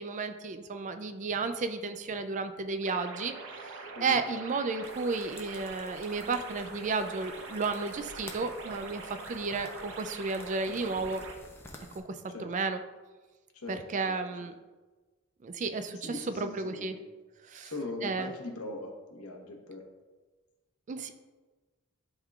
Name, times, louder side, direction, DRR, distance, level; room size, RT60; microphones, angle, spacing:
voice 1, 0.0-3.4 3.6-11.2 12.0-12.8 13.7-14.5 15.4-17.0 17.5-17.7 18.0-18.3 20.9-21.1, right 4 dB, 35° right, 8 dB, 0.3 m, -33 dB
sound 1, 2.8-11.4, right 4 dB, 60° right, 0.8 m, -44 dB
sound 2, 4.8-12.0, left 1 dB, 10° left, 0.6 m, -51 dB
voice 2, 13.5-14.1 16.0-17.0 17.6-19.8, left 2 dB, 75° left, 1 dB, 1.1 m, -41 dB
11.0 x 3.7 x 2.4 m, 1.3 s
head